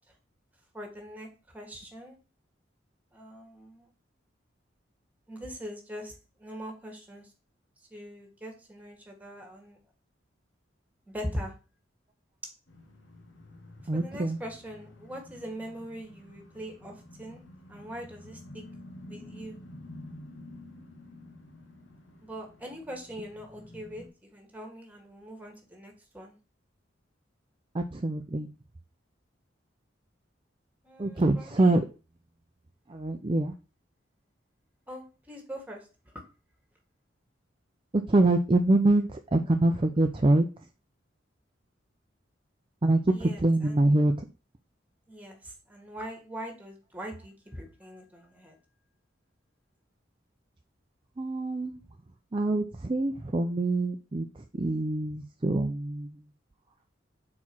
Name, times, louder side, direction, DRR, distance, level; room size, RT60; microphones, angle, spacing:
voice 1, 0.7-2.2 3.1-3.9 5.3-6.1 6.4-7.3 7.9-9.8 11.1-11.5 13.9-17.4 17.7-18.6 19.1-19.6 22.2-26.4 30.8-31.8 34.9-36.1 43.1-43.9 45.1-48.6, equal, 10° right, 2 dB, 1.7 m, -42 dB
sound 1, 12.7-24.1, left 1 dB, 85° left, 1.5 m, -49 dB
voice 2, 13.9-14.4 27.7-28.5 31.0-31.8 32.9-33.5 37.9-40.5 42.8-44.3 51.2-51.8 52.3-56.1, right 2 dB, 25° right, 4 dB, 0.5 m, -25 dB
4.7 x 4.3 x 5.9 m, 0.33 s
head